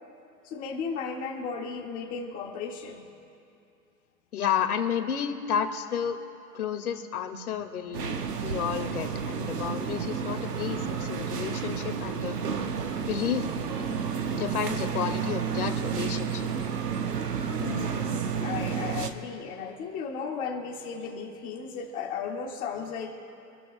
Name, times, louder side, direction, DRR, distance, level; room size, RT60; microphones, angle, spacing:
voice 1, 0.4-3.1 17.6-23.1, left 5 dB, 15° left, -1 dB, 1.8 m, -35 dB
voice 2, 4.3-6.2 6.5-8.2 8.4-12.4 13.0-13.5 14.3-16.4, left 8 dB, 60° left, 5 dB, 2.1 m, -31 dB
sound 1, 7.9-19.1, right 6 dB, 70° right, 1.5 m, -31 dB
28.0 x 13.5 x 2.3 m, 2.6 s
hypercardioid pair, 150°, 50 cm